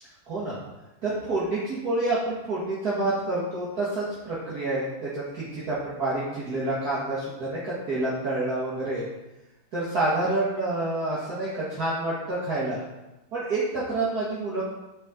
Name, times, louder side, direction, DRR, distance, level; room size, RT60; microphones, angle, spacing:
voice 1, 0.3-0.6 1.0-9.1 9.7-12.8 13.3-14.6, right 2 dB, 45° right, -9 dB, 2.1 m, -28 dB
12.0 x 4.4 x 3.8 m, 1.0 s
omnidirectional pair, 2.4 m